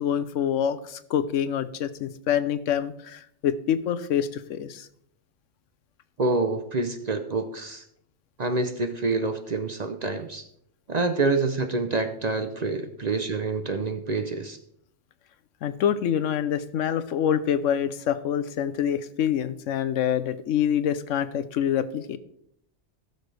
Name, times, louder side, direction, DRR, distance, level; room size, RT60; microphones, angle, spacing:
voice 1, 0.0-4.9 15.6-22.2, left 9 dB, 90° left, 14 dB, 1.0 m, -26 dB
voice 2, 6.2-7.8 8.4-10.4 10.9-14.6, right 3 dB, 45° right, 8 dB, 0.6 m, -27 dB
16.0 x 6.7 x 3.3 m, 0.70 s
omnidirectional pair, 1.3 m